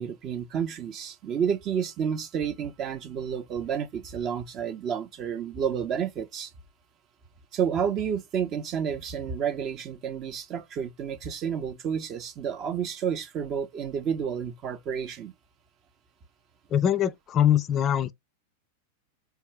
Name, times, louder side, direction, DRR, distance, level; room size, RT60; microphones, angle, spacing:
voice 1, 0.0-6.5 7.5-15.3, right 7 dB, 35° right, 0.6 m, -30 dB
voice 2, 16.7-18.1, left 10 dB, 30° left, 0.3 m, -23 dB
3.5 x 2.3 x 3.3 m
figure-of-eight pair, 90°, 0 cm